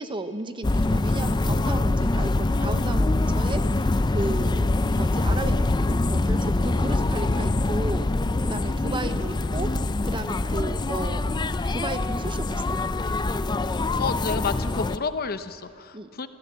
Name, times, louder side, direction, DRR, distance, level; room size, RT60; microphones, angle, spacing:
voice 1, 0.0-4.7 4.9-8.1 8.4-9.7 10.0-11.2 11.7-12.8 15.9-16.1, right 2 dB, 25° right, 10 dB, 0.8 m, -34 dB
sound 1, 0.6-15.0, left 2 dB, 20° left, 0.4 m, -24 dB
voice 2, 14.0-16.3, left 5 dB, 45° left, 11 dB, 0.8 m, -30 dB
24.0 x 16.0 x 7.4 m, 2.6 s
head